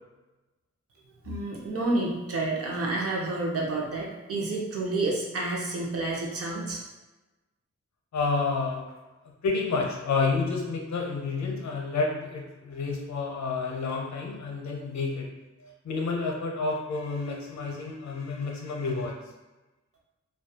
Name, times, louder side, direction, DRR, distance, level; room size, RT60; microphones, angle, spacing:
voice 1, 1.2-6.8, right 2 dB, 50° right, -1 dB, 0.6 m, -29 dB
voice 2, 8.1-8.9 9.4-15.3 15.6-19.1, left 4 dB, 70° left, 0 dB, 0.6 m, -29 dB
2.3 x 2.2 x 2.7 m, 1.1 s
wide cardioid pair, 115°, 29 cm